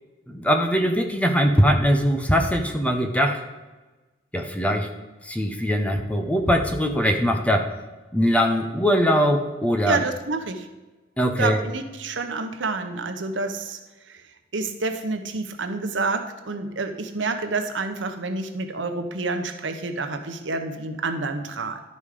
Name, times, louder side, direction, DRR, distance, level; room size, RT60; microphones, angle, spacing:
voice 1, 0.3-3.4 4.3-4.9 5.3-7.7 8.1-10.0 11.2-11.6, equal, 5° left, 4 dB, 0.8 m, -21 dB
voice 2, 9.9-10.7 11.4-13.8 14.1-14.2 14.5-21.8, right 3 dB, 90° right, 7 dB, 0.9 m, -28 dB
11.5 x 5.4 x 4.9 m, 1.2 s
head